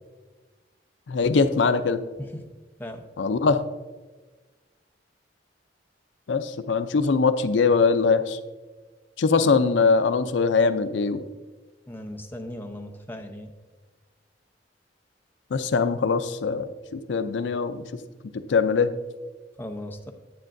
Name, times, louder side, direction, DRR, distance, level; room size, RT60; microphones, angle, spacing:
voice 1, 1.1-2.0 3.2-3.7 6.3-8.4 9.2-11.2 15.5-17.8 18.5-18.9, left 4 dB, 75° left, 11 dB, 0.5 m, -22 dB
voice 2, 11.9-13.5 19.6-20.1, left 1 dB, 10° left, 4 dB, 0.6 m, -37 dB
9.9 x 8.8 x 2.6 m, 1.3 s
head